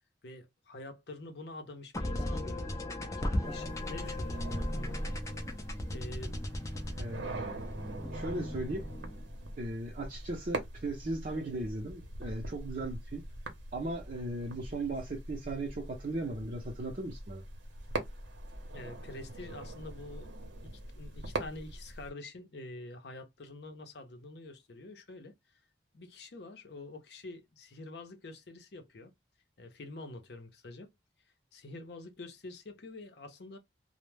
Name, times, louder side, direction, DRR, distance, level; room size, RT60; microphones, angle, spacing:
voice 1, 0.2-5.0 5.9-6.4 18.7-20.3 20.6-25.6 25.9-29.1 29.6-30.9 31.5-33.6, left 2 dB, 65° left, 0.6 m, -47 dB
sound 1, 1.9-9.3, left 1 dB, 15° left, 0.4 m, -37 dB
sound 2, 3.4-22.1, right 2 dB, 90° right, 0.7 m, -42 dB
voice 2, 8.1-8.9 9.6-13.2 13.7-17.4, right 2 dB, 45° right, 0.6 m, -37 dB
2.1 x 2.1 x 3.1 m
head